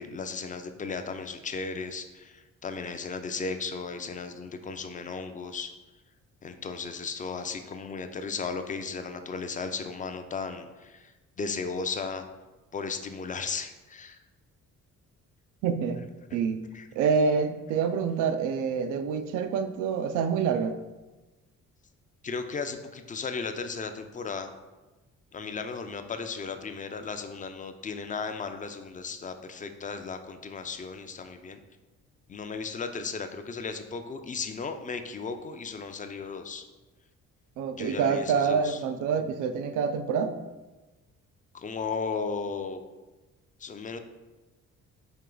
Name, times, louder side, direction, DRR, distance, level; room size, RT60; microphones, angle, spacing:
voice 1, 0.0-5.7 6.4-11.1 11.4-12.3 12.7-14.2 16.7-16.9 22.2-24.5 25.3-31.6 32.3-36.6 37.7-38.8 41.5-42.8 43.6-44.0, left 5 dB, 25° left, 8 dB, 0.4 m, -35 dB
voice 2, 15.6-16.6 17.0-20.8 37.6-40.3, right 6 dB, 80° right, 10 dB, 0.5 m, -27 dB
4.5 x 3.0 x 3.8 m, 1.1 s
cardioid pair, 90°, 30 cm